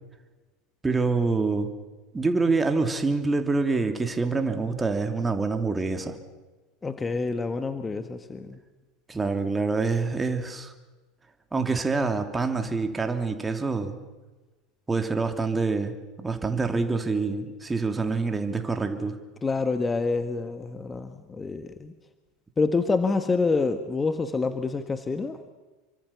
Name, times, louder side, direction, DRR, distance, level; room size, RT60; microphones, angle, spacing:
voice 1, 0.8-1.7 2.1-6.2 9.1-10.7 11.5-13.9 14.9-19.2, right 4 dB, 15° right, 6 dB, 2.9 m, -26 dB
voice 2, 6.8-8.6 19.4-21.9 22.6-25.5, left 4 dB, 20° left, 9 dB, 1.8 m, -27 dB
28.0 x 24.5 x 7.2 m, 1.2 s
hypercardioid pair, 85°, 0 cm